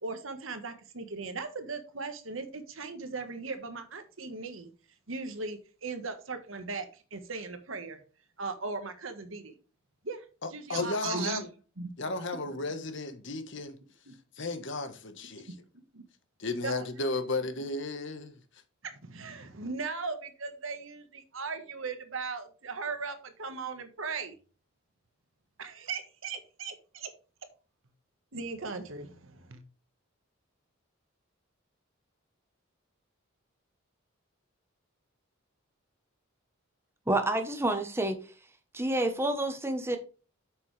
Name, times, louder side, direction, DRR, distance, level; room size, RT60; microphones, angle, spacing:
voice 1, 0.0-4.7 5.1-8.0 8.4-9.5 10.0-11.4 11.8-11.9 14.1-14.2 15.7-16.0 16.6-16.7 18.9-24.3 25.6-27.1 28.3-29.6, right 4 dB, 70° right, 1.5 m, -38 dB
voice 2, 10.4-11.5 12.0-13.8 14.4-15.5 16.4-18.4, left 3 dB, 60° left, 1.4 m, -34 dB
voice 3, 37.1-38.2 38.7-40.0, right 1 dB, 10° right, 1.1 m, -28 dB
8.4 x 6.6 x 3.3 m
head